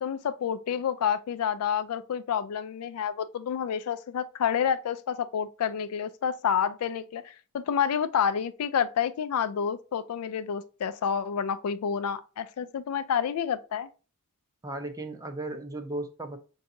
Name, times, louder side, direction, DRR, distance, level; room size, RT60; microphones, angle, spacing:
voice 1, 0.0-13.9, left 8 dB, 75° left, 0.4 m, -29 dB
voice 2, 14.6-16.4, right 2 dB, 15° right, 0.5 m, -36 dB
5.7 x 2.7 x 2.6 m
head